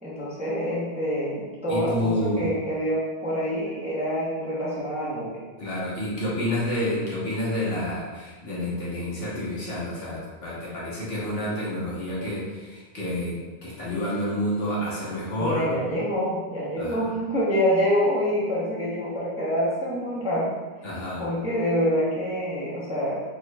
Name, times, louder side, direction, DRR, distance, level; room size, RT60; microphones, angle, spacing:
voice 1, 0.0-5.4 15.4-20.5 21.2-23.2, equal, 5° right, -8 dB, 0.6 m, -26 dB
voice 2, 1.7-2.5 5.6-15.8 16.8-17.1 20.8-21.2, left 1 dB, 60° left, -7 dB, 1.3 m, -29 dB
4.4 x 3.0 x 2.2 m, 1.3 s
omnidirectional pair, 1.2 m